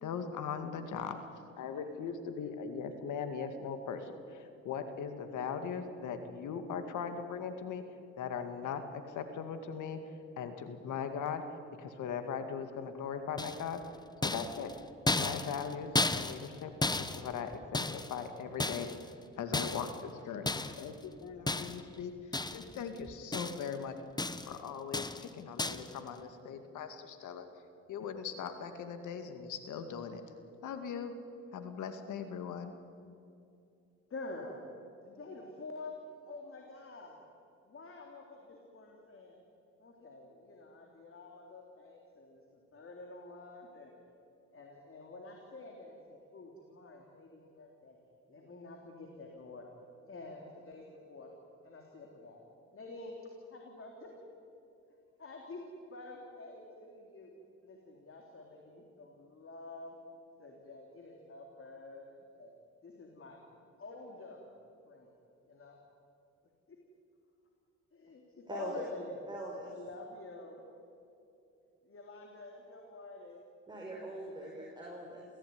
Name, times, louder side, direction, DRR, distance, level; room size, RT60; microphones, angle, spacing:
voice 1, 0.0-1.2 1.6-7.8 8.2-10.0 10.4-13.8 14.2-14.7 15.1-16.7 17.0-18.9 19.4-22.1 22.5-24.0 24.5-27.5 27.9-30.2 30.6-31.1 31.5-32.7, left 6 dB, 80° left, 8 dB, 2.2 m, -39 dB
sound 1, 13.4-13.8 14.2-16.6 16.8-18.2 18.6-19.1 19.5-20.0 20.5-20.9 21.5-21.9 22.3-22.8 23.1-23.8 24.2-24.6 24.9-25.3 25.6-25.9, left 2 dB, 15° left, 1.0 m, -34 dB
voice 2, 34.1-34.6 35.0-36.0 36.2-37.2 37.6-39.4 39.8-43.9 44.5-48.0 48.3-49.7 50.1-51.3 51.6-52.4 52.7-53.2 53.5-54.1 55.2-55.6 55.9-57.3 57.6-60.0 60.4-62.5 62.8-63.4 63.8-64.5 64.9-65.1 65.4-65.8 66.7-66.8 67.9-69.2 69.6-70.8 71.8-73.4, left 3 dB, 45° left, 1 dB, 3.7 m, -48 dB
voice 3, 69.3-69.7 73.7-75.3, right 1 dB, 15° right, -2 dB, 5.4 m, -42 dB
28.5 x 16.5 x 9.6 m, 2.7 s
cardioid pair, 90°, 30 cm